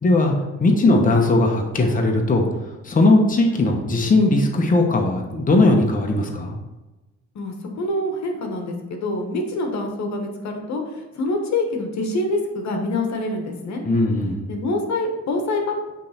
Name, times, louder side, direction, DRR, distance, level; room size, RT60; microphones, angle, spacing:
voice 1, 0.0-6.6 13.8-14.4, left 2 dB, 25° left, 2 dB, 1.0 m, -18 dB
voice 2, 7.3-13.8 14.5-15.7, left 2 dB, 65° left, 3 dB, 1.2 m, -26 dB
8.3 x 3.3 x 4.3 m, 1.1 s
cardioid pair, 90°, 30 cm